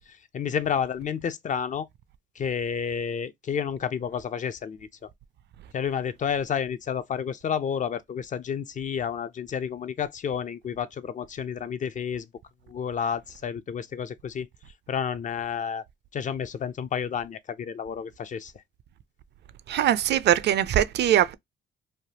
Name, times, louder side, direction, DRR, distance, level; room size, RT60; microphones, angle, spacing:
voice 1, 0.3-1.9 2.4-4.9 5.7-12.3 12.7-14.5 14.9-15.8 16.1-18.5, left 7 dB, 40° left, 0.4 m, -30 dB
voice 2, 19.7-21.3, right 11 dB, 60° right, 0.4 m, -22 dB
3.2 x 2.3 x 2.7 m
cardioid pair, 90°, 20 cm